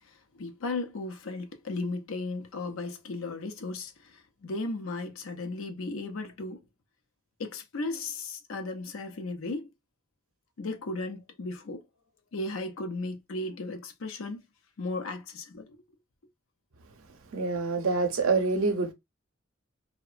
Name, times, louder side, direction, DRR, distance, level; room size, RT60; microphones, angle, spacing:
voice 1, 0.1-6.6 7.4-9.7 10.6-11.9 12.3-14.4 14.8-15.8, left 2 dB, 85° left, 0.5 m, -35 dB
voice 2, 17.3-18.9, right 3 dB, 90° right, 0.6 m, -26 dB
2.8 x 2.0 x 2.4 m
head